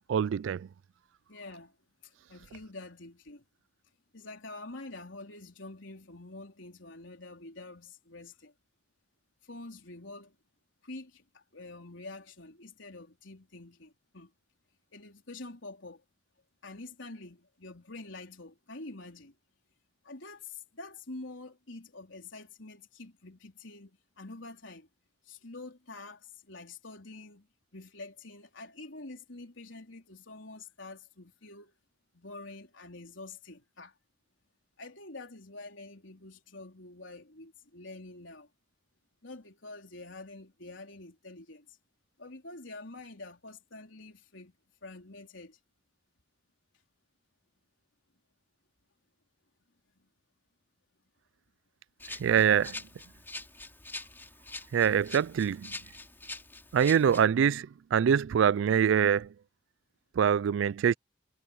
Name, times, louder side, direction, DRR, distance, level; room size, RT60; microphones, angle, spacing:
voice 1, 0.1-0.7 52.2-52.8 54.7-55.7 56.7-59.3 60.2-60.9, right 8 dB, 75° right, 0.3 m, -24 dB
voice 2, 1.3-1.8 2.0-3.4 4.1-8.5 9.4-10.4 10.8-14.3 14.9-16.0 16.6-19.4 20.0-24.9 25.2-27.5 27.7-31.7 32.1-33.9 34.8-38.5 39.2-41.8 42.2-44.6 44.8-45.6 49.9-50.1, left 2 dB, 80° left, 3.8 m, -47 dB
Rattle (instrument), 52.0-57.2, left 2 dB, 10° left, 3.1 m, -44 dB
head